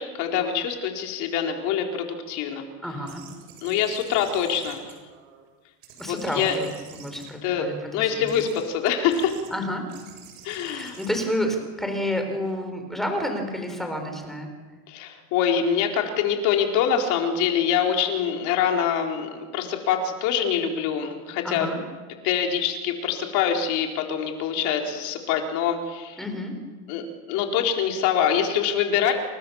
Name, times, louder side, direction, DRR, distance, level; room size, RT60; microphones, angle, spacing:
voice 1, 0.0-2.7 3.6-4.8 6.1-6.6 7.4-9.4 10.4-11.0 14.9-21.7 22.2-26.2 26.9-29.1, left 8 dB, 40° left, 3 dB, 4.1 m, -25 dB
voice 2, 2.8-3.2 6.0-6.7 7.0-8.3 9.5-9.9 10.6-14.5 21.4-21.8 26.2-26.5, equal, ahead, 4 dB, 4.4 m, -30 dB
sound 1, 3.0-5.5 5.8-7.8 8.2-8.7 9.1-9.5 9.9-12.4, right 8 dB, 55° right, 7.7 m, -48 dB
29.0 x 28.5 x 7.1 m, 1.4 s
supercardioid pair, 170°, 43 cm